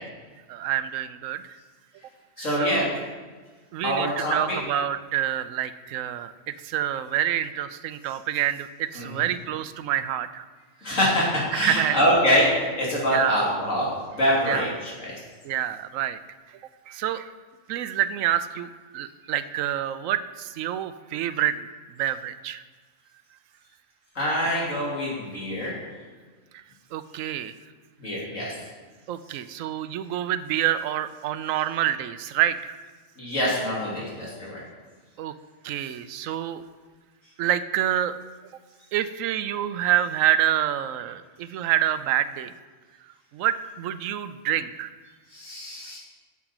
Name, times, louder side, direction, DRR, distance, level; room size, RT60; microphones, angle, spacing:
voice 1, 0.5-1.4 2.4-3.0 3.7-10.5 11.5-12.0 13.1-13.4 14.5-14.7 15.4-16.2 16.9-17.3 17.7-21.7 22.0-22.6 26.5-26.6 26.9-27.5 29.1-32.8 35.2-35.3 35.6-36.6 37.4-38.1 38.9-42.5 43.3-44.9, right 11 dB, 85° right, 13 dB, 1.0 m, -27 dB
voice 2, 2.4-2.9 3.8-4.6 8.9-9.3 10.8-12.5 12.8-13.9 14.2-15.2 24.1-25.7 28.0-28.5 33.2-34.6 45.3-46.0, equal, 80° left, -5 dB, 3.2 m, -25 dB
8.8 x 7.3 x 5.9 m, 1.4 s
omnidirectional pair, 1.3 m